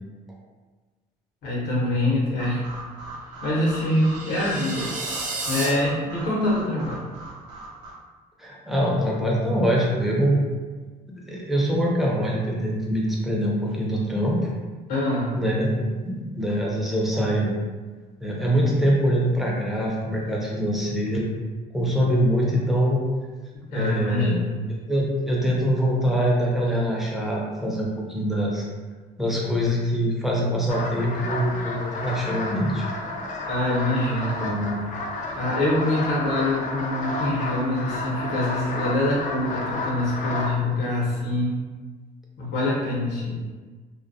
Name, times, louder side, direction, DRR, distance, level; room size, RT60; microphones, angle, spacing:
voice 1, 1.4-2.6 3.4-4.9 5.5-7.1 14.9-15.4 23.7-24.6 33.5-34.4 35.3-41.6 42.4-43.4, left 1 dB, 75° left, -5 dB, 0.8 m, -24 dB
sound 1, 2.4-7.9, right 2 dB, 90° right, 0.6 m, -40 dB
sound 2, 3.7-5.7, right 3 dB, 50° right, 0.6 m, -32 dB
voice 2, 8.4-10.4 11.3-14.4 15.3-17.5 18.2-21.3 21.7-23.0 23.7-24.4 24.7-28.7 29.2-32.8 34.4-34.8, equal, ahead, -4 dB, 0.6 m, -24 dB
sound 3, 30.7-40.5, left 2 dB, 45° left, 0.4 m, -31 dB
2.2 x 2.2 x 2.6 m, 1.4 s
cardioid pair, 110°, 17 cm